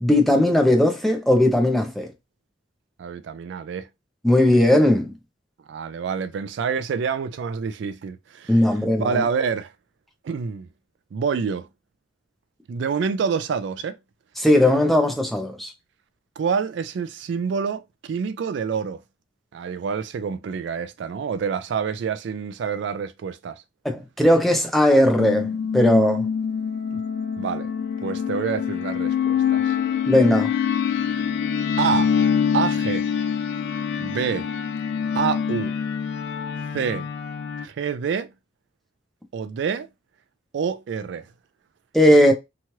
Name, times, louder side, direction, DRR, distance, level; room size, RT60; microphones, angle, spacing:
voice 1, 0.0-2.1 4.2-5.1 8.5-9.2 14.4-15.7 23.8-26.2 30.1-30.5 41.9-42.3, left 1 dB, ahead, 0.5 m, -18 dB
voice 2, 3.0-3.9 5.7-8.6 9.0-9.7 10.2-10.7 11.1-11.7 12.7-14.0 16.4-19.0 19.5-23.6 26.9-27.0 27.4-27.7 28.0-29.8 31.8-32.1 32.5-33.1 34.0-34.5 35.1-35.7 36.7-37.1 37.6-38.3 39.3-39.9 40.5-41.3, right 6 dB, 60° right, 0.3 m, -27 dB
sound 1, 25.2-37.6, left 7 dB, 60° left, 0.3 m, -25 dB
3.0 x 2.4 x 2.8 m
head